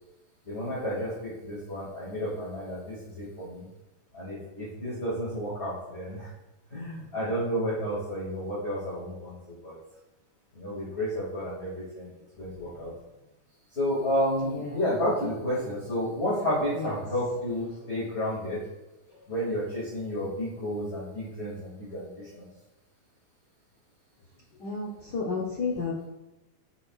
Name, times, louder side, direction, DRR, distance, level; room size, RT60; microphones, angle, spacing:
voice 1, 0.5-3.7 4.1-6.3 6.7-9.8 10.5-12.1 12.4-12.9 13.7-18.6 19.3-22.5, equal, 25° left, -8 dB, 2.3 m, -31 dB
voice 2, 12.6-12.9 14.4-14.8 16.8-16.9 19.1-19.2 24.6-26.1, left 4 dB, 60° left, -4 dB, 1.1 m, -33 dB
10.0 x 7.9 x 2.5 m, 0.99 s
omnidirectional pair, 3.3 m